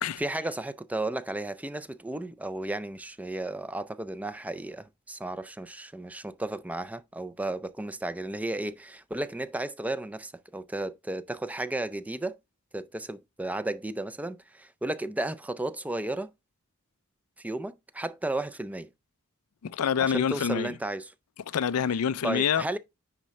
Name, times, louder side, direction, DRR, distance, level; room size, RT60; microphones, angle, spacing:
voice 1, 0.2-12.4 12.7-16.3 17.4-18.9 20.0-21.1 22.2-22.8, right 2 dB, 5° right, 0.4 m, -34 dB
voice 2, 19.6-20.7 21.5-22.6, left 7 dB, 75° left, 0.4 m, -26 dB
9.8 x 3.7 x 3.1 m
head